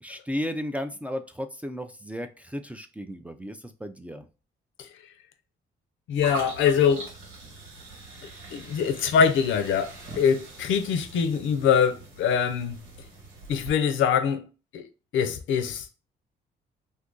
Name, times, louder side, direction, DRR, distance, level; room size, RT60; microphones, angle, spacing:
voice 1, 0.0-4.3, equal, 5° right, 0.3 m, -34 dB
voice 2, 6.1-7.1 8.5-12.8 13.5-14.4 14.7-14.9 15.1-15.9, left 7 dB, 75° left, 0.5 m, -23 dB
sound 1, 6.2-13.7, right 3 dB, 90° right, 1.5 m, -43 dB
2.7 x 2.5 x 3.6 m
cardioid pair, 90°, 20 cm